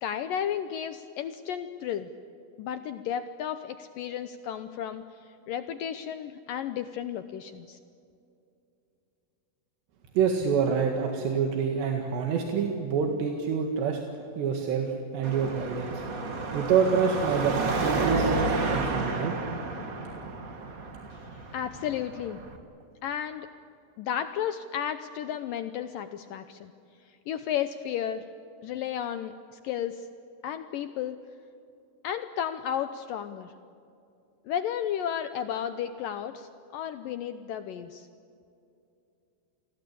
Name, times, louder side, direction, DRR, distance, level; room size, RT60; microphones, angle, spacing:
voice 1, 0.0-2.1 2.6-5.0 5.5-7.8 21.1-21.2 21.5-22.4 23.0-23.5 24.0-26.7 27.3-28.2 28.6-29.3 29.6-30.1 30.4-31.2 32.0-33.5 34.5-38.1, left 9 dB, 80° left, 10 dB, 2.0 m, -33 dB
voice 2, 10.2-14.0 14.4-16.0 16.5-19.3, right 6 dB, 80° right, 3 dB, 4.0 m, -27 dB
Car passing by / Traffic noise roadway noise / Engine, 15.2-22.6, right 3 dB, 65° right, 0.8 m, -31 dB
28.5 x 22.0 x 8.5 m, 2.7 s
omnidirectional pair, 4.9 m